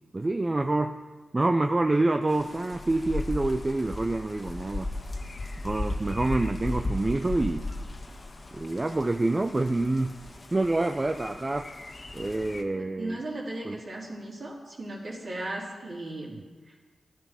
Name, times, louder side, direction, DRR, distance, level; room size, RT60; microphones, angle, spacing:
voice 1, 0.1-1.0 1.3-4.9 5.6-7.7 8.5-10.2 10.5-11.7 12.1-13.2 13.6-13.8, right 2 dB, 30° right, 6 dB, 0.6 m, -27 dB
sound 1, 2.3-12.6, left 2 dB, 50° left, 1.6 m, -36 dB
voice 2, 12.7-16.8, right 1 dB, 60° right, -5 dB, 3.4 m, -37 dB
14.0 x 11.0 x 6.0 m, 1.4 s
cardioid pair, 50°, 0 cm